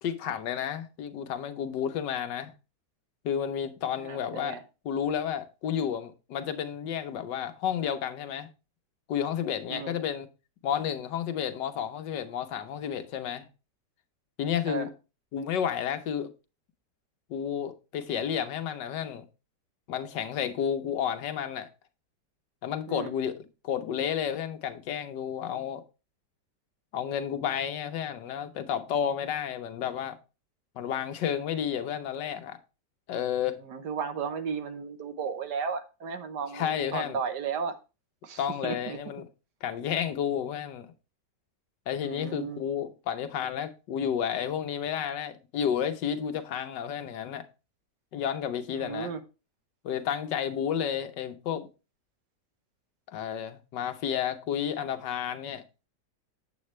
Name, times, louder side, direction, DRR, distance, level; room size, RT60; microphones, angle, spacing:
voice 1, 0.0-2.5 3.2-4.6 4.8-8.5 9.1-10.3 10.6-13.5 14.4-14.9 15.3-16.3 17.3-19.3 19.9-21.7 22.6-23.3 23.6-25.8 26.9-30.2 30.8-32.6 33.1-33.6 36.5-37.2 38.4-39.2 39.6-40.9 41.9-47.4 48.1-49.1 49.8-51.7 53.1-55.6, left 8 dB, 80° left, 1.5 m, -31 dB
voice 2, 4.0-4.6 9.7-9.9 14.7-14.9 22.9-23.1 33.6-37.8 38.2-39.0 42.0-42.6 48.7-49.2, right 6 dB, 75° right, 1.5 m, -34 dB
8.3 x 8.1 x 3.1 m
omnidirectional pair, 1.9 m